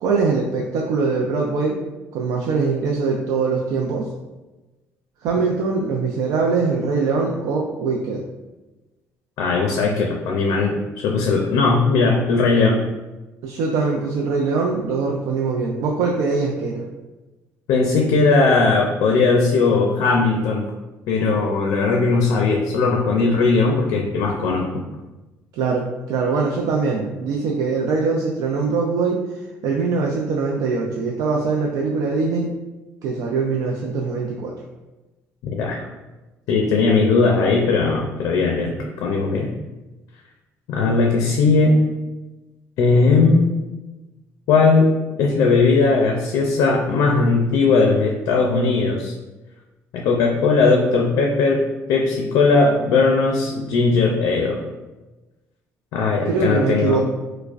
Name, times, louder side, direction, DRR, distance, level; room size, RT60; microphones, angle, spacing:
voice 1, 0.0-1.8 2.1-4.1 5.2-8.2 13.4-16.8 25.5-32.5 33.0-34.5 56.3-57.0, right 4 dB, 80° right, -1 dB, 0.4 m, -22 dB
voice 2, 9.4-12.8 17.7-20.7 21.1-24.7 35.6-35.9 36.5-38.7 39.0-39.5 40.7-41.8 42.8-43.5 44.5-44.9 45.2-49.1 49.9-54.6 55.9-57.0, left 4 dB, 80° left, 1 dB, 0.4 m, -18 dB
4.7 x 2.1 x 2.4 m, 1.1 s
cardioid pair, 145°, 6 cm